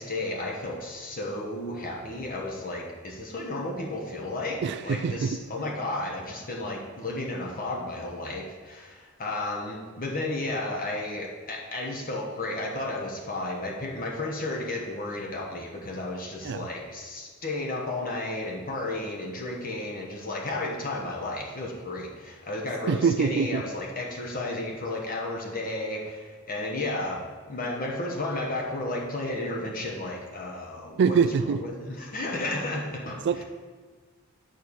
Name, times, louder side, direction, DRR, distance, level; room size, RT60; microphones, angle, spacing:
voice 1, 0.0-31.2 31.6-33.4, left 2 dB, 40° left, 0 dB, 1.1 m, -33 dB
voice 2, 4.6-5.4 16.4-16.7 22.9-23.6 31.0-31.6 33.2-33.4, right 6 dB, 55° right, 9 dB, 0.4 m, -24 dB
9.2 x 4.7 x 6.9 m, 1.5 s
head